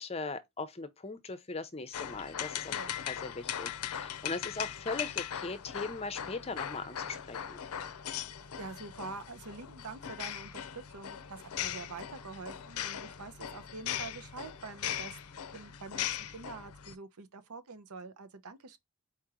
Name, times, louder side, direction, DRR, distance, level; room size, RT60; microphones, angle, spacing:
voice 1, 0.0-2.7 3.1-7.6, left 3 dB, 25° left, 0.6 m, -39 dB
sound 1, 1.9-17.0, left 9 dB, 80° left, 0.5 m, -39 dB
voice 2, 8.6-18.8, right 4 dB, 85° right, 0.8 m, -46 dB
4.4 x 2.9 x 3.6 m
head